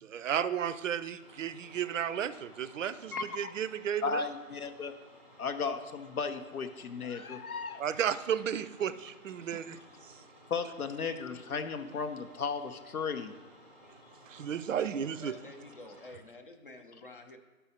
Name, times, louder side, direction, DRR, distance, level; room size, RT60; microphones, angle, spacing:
voice 1, 0.0-4.3 7.8-9.8 10.0-10.2 14.3-15.3, right 8 dB, 65° right, 14 dB, 0.5 m, -33 dB
sound 1, 1.2-16.1, equal, 10° right, 0.6 m, -57 dB
voice 2, 3.1-3.5 4.0-4.9 5.4-7.8 10.5-13.4, left 5 dB, 85° left, 7 dB, 0.7 m, -35 dB
voice 3, 15.2-17.4, left 2 dB, 40° left, 5 dB, 0.6 m, -49 dB
11.5 x 5.6 x 2.8 m, 1.3 s
figure-of-eight pair, 145°, 42 cm